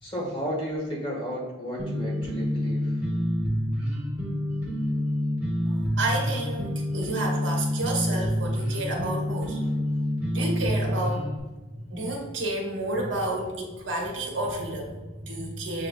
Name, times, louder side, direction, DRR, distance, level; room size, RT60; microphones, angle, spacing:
voice 1, 0.0-3.0, equal, 25° left, -5 dB, 1.5 m, -33 dB
sound 1, 1.8-11.4, equal, 10° right, 1.0 m, -27 dB
voice 2, 5.7-9.7 10.3-11.2 11.9-15.9, right 1 dB, 70° right, 0 dB, 1.0 m, -30 dB
7.2 x 3.0 x 2.4 m, 1.2 s
head